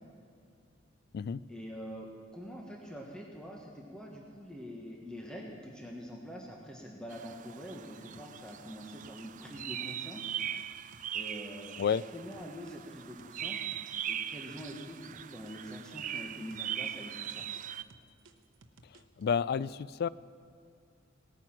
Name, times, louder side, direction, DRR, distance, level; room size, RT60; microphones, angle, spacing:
voice 1, 1.5-10.3 11.1-11.7 12.1-13.7 14.1-17.4, equal, 5° left, -1 dB, 1.3 m, -45 dB
sound 1, 7.1-17.8, right 10 dB, 40° right, 0.4 m, -40 dB
sound 2, 8.1-12.8 13.2-16.2 16.5-19.2, right 3 dB, 75° right, 0.9 m, -58 dB
voice 2, 19.2-20.1, left 7 dB, 55° left, 19 dB, 0.3 m, -30 dB
18.0 x 9.2 x 5.8 m, 2.4 s
head